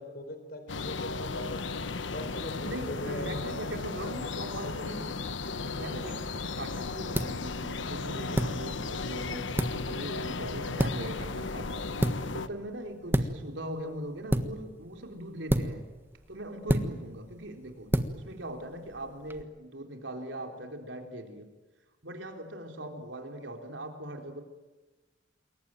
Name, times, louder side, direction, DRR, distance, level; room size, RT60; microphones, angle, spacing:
voice 1, 0.0-1.6 2.0-3.5 6.6-6.8, left 1 dB, 55° left, 8 dB, 4.3 m, -41 dB
sound 1, 0.7-12.5, left 3 dB, 80° left, 1.2 m, -35 dB
voice 2, 2.6-5.3 5.5-11.7 12.2-15.8 16.3-21.5 22.0-24.4, right 1 dB, 80° right, 4 dB, 3.9 m, -40 dB
sound 2, 5.9-19.4, equal, 10° right, 1.5 m, -33 dB
28.0 x 22.5 x 9.1 m, 1.2 s
head